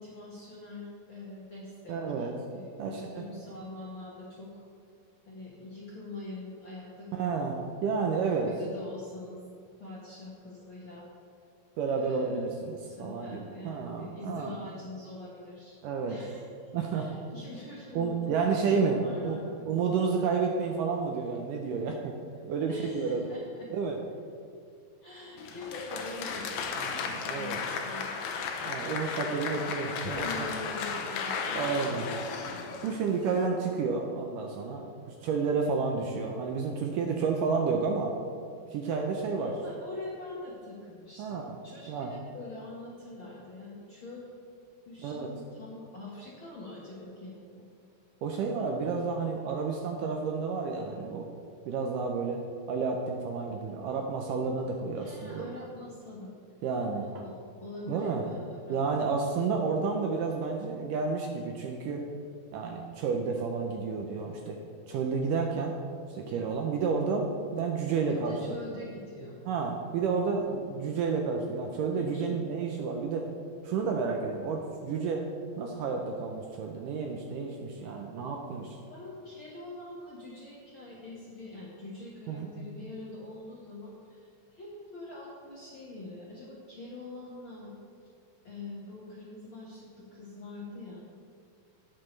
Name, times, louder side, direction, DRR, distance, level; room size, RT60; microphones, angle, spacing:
voice 1, 0.0-4.6 5.3-7.6 8.4-9.4 9.8-11.1 12.0-12.5 12.9-15.8 16.0-20.0 22.7-23.7 25.0-28.1 30.1-32.4 34.6-34.7 39.1-44.3 44.9-47.6 54.9-56.3 56.9-58.8 68.1-69.4 71.9-72.4 78.9-87.7 88.4-91.0, left 2 dB, 55° left, -6 dB, 1.5 m, -44 dB
voice 2, 1.9-2.3 2.8-3.2 7.1-7.5 7.8-8.5 11.8-14.5 15.8-16.1 16.7-17.1 17.9-19.4 19.7-22.2 22.5-23.2 23.7-24.0 26.7-27.6 28.7-30.5 31.6-32.1 32.8-38.1 38.7-39.5 41.2-41.5 41.9-42.1 45.0-45.3 48.2-51.3 51.7-52.4 52.7-55.5 56.6-57.3 57.9-58.2 58.7-62.0 62.5-64.6 64.9-65.8 66.1-67.3 67.5-68.4 69.5-73.2 73.6-75.2 75.6-78.8 82.3-82.5, right 5 dB, 75° right, 2 dB, 2.0 m, -30 dB
Applause, 25.4-33.5, left 5 dB, 75° left, 2.1 m, -35 dB
18.0 x 6.7 x 3.2 m, 2.2 s
omnidirectional pair, 4.4 m